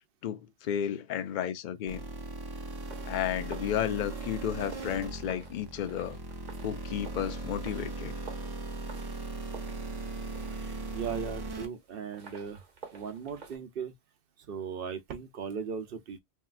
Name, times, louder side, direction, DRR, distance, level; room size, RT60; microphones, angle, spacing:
voice 1, 0.2-2.0 3.1-6.2 6.6-8.1, left 10 dB, 60° left, 0.6 m, -33 dB
sound 1, 1.9-11.7, right 2 dB, 30° right, 0.5 m, -38 dB
sound 2, 2.8-13.6, right 5 dB, 45° right, 1.0 m, -51 dB
voice 2, 10.5-12.6 12.9-13.9 14.5-16.2, right 6 dB, 65° right, 0.8 m, -38 dB
3.1 x 2.7 x 2.4 m
omnidirectional pair, 1.1 m